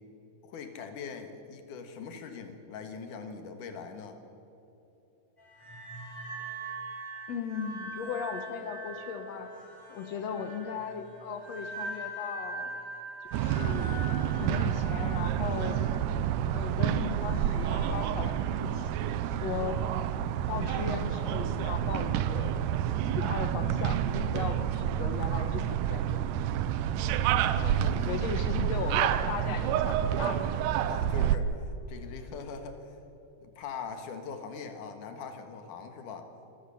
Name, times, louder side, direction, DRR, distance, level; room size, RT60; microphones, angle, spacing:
voice 1, 0.4-4.2 27.5-28.3 30.8-33.0 33.4-36.3, left 5 dB, 85° left, 6 dB, 3.1 m, -42 dB
sound 1, 5.4-18.0, right 1 dB, 5° left, 5.7 m, -42 dB
voice 2, 7.3-9.5 9.9-12.7 13.3-15.8 16.5-19.8 20.5-22.5 23.1-26.2 27.9-30.5, left 7 dB, 65° left, 8 dB, 2.3 m, -37 dB
sound 2, 13.3-31.4, right 10 dB, 90° right, 2.3 m, -29 dB
26.0 x 14.5 x 7.1 m, 2.9 s
omnidirectional pair, 3.5 m